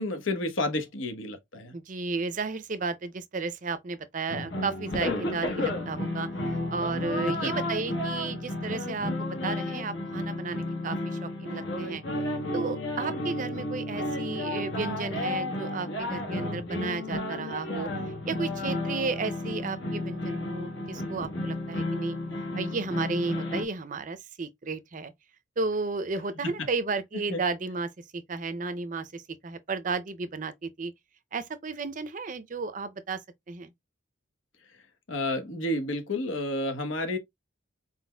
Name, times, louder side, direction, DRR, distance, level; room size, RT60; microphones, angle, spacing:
voice 1, 0.0-1.7 7.3-7.5 26.4-26.7 27.3-27.4 35.1-37.2, left 1 dB, 90° left, 1.1 m, -30 dB
voice 2, 1.7-6.3 6.7-12.0 12.5-17.9 18.3-22.2 22.5-25.1 25.6-30.9 31.3-33.2 33.5-33.7, right 4 dB, 40° right, 0.5 m, -33 dB
sound 1, 4.3-23.6, left 1 dB, 70° left, 1.3 m, -32 dB
4.3 x 4.1 x 2.2 m
head